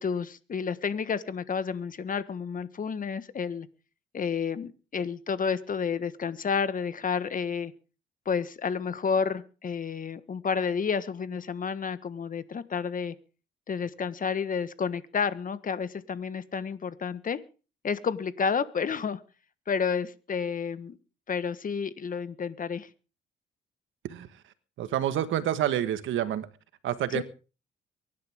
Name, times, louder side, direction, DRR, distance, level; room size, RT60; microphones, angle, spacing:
voice 1, 0.0-3.7 4.1-7.7 8.2-13.1 13.7-17.4 17.8-19.2 19.7-21.0 21.3-22.9 27.1-27.2, left 6 dB, 45° left, 14 dB, 1.4 m, -30 dB
voice 2, 24.8-26.5 26.8-27.2, right 11 dB, 80° right, 12 dB, 1.6 m, -28 dB
23.5 x 11.5 x 3.6 m, 0.35 s
cardioid pair, 90°, 20 cm